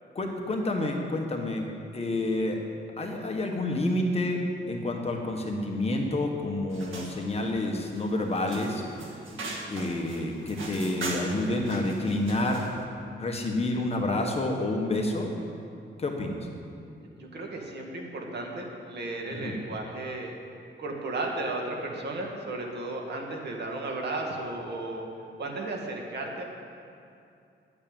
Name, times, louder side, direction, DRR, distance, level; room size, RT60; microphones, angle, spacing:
voice 1, 0.1-1.6 1.9-2.6 3.0-4.4 4.7-8.8 9.7-12.7 13.1-15.3 16.0-16.4 19.4-19.6, left 2 dB, 30° left, 1 dB, 1.4 m, -29 dB
sound 1, 6.7-12.8, right 2 dB, 85° right, 1.9 m, -40 dB
voice 2, 17.2-20.3 20.8-25.1 25.4-26.4, right 2 dB, 60° right, 0 dB, 2.1 m, -34 dB
11.0 x 8.6 x 8.9 m, 2.5 s
wide cardioid pair, 165°, 20 cm